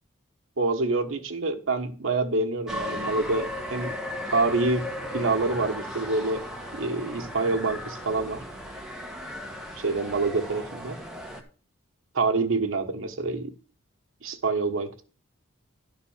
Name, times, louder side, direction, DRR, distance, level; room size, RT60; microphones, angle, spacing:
voice 1, 0.6-3.9 4.3-4.9 5.1-6.4 6.7-8.4 9.8-11.0 12.1-13.5 14.2-15.0, right 3 dB, 70° right, 1.2 m, -26 dB
sound 1, 2.7-11.4, equal, 5° right, 1.2 m, -36 dB
11.5 x 4.0 x 7.1 m
head